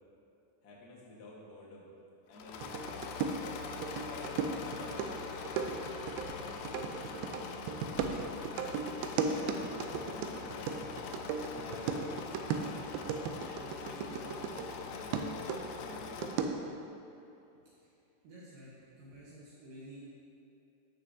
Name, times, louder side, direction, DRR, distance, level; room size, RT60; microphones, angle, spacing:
voice 1, 0.6-1.9 2.3-3.3 3.8-7.7 8.2-8.5 9.0-11.0 11.4-12.9 13.4-16.4, left 1 dB, 55° left, -5 dB, 1.1 m, -51 dB
Engine / Mechanisms, 2.3-16.6, left 5 dB, 85° left, 2.3 m, -43 dB
sound 1, 2.6-14.8 15.1-16.8, right 5 dB, 90° right, 2.4 m, -36 dB
voice 2, 18.2-20.1, right 1 dB, 75° right, -8 dB, 2.8 m, -51 dB
15.0 x 6.5 x 2.7 m, 2.8 s
omnidirectional pair, 4.1 m